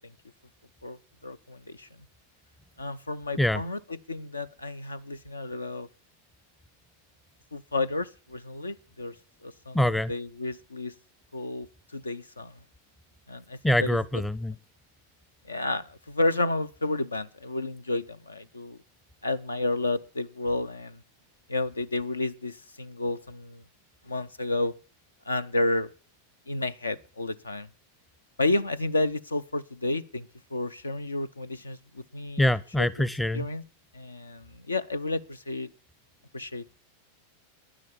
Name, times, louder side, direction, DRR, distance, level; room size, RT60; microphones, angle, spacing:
voice 1, 0.8-1.9 2.8-3.8 4.1-5.9 7.5-9.2 9.4-9.8 10.1-10.9 11.3-12.6 13.3-14.0 15.4-18.8 19.2-21.0 21.5-23.6 24.1-24.7 25.3-25.9 26.5-27.7 28.4-32.5 32.8-32.9 33.3-33.6 33.9-35.7 36.3-36.7, left 2 dB, 80° left, 0.5 m, -31 dB
voice 2, 9.7-10.1 13.6-14.5 32.4-33.5, left 1 dB, 5° left, 0.6 m, -24 dB
10.5 x 10.0 x 7.2 m
figure-of-eight pair, 90°, 0 cm